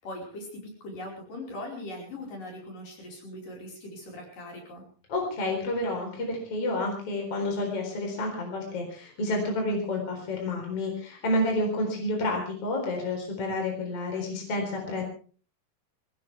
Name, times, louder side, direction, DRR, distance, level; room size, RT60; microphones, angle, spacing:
voice 1, 0.0-4.8, left 1 dB, 65° left, 0 dB, 6.7 m, -40 dB
voice 2, 5.1-15.0, left 1 dB, 40° left, 1 dB, 5.0 m, -29 dB
22.0 x 18.5 x 3.5 m, 0.40 s
omnidirectional pair, 4.1 m